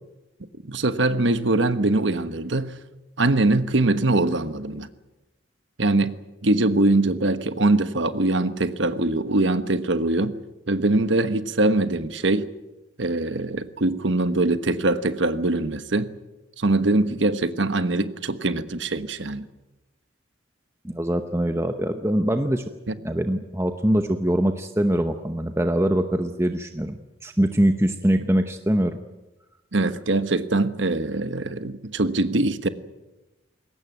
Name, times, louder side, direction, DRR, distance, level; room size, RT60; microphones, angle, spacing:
voice 1, 0.6-2.7 3.2-4.9 5.8-10.4 10.7-12.5 13.0-16.1 16.6-19.5 22.9-23.0 29.7-32.7, right 2 dB, 75° right, 11 dB, 1.3 m, -22 dB
voice 2, 20.8-22.6 23.0-29.0, right 1 dB, 15° right, 7 dB, 0.8 m, -23 dB
21.5 x 18.5 x 9.3 m, 1.1 s
head